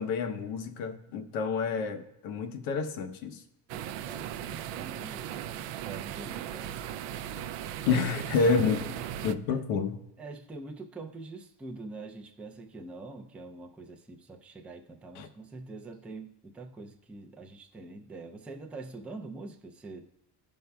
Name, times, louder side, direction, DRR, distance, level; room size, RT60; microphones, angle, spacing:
voice 1, 0.0-3.4 7.9-8.9 9.2-10.0 15.2-15.3, left 5 dB, 90° left, 0.9 m, -29 dB
voice 2, 3.7-7.0 7.8-8.2 9.5-9.6 10.2-20.1, right 3 dB, 5° right, 0.3 m, -45 dB
sound 1, 3.7-9.3, right 10 dB, 75° right, 0.5 m, -37 dB
16.0 x 5.3 x 2.2 m
cardioid pair, 130°, 45 cm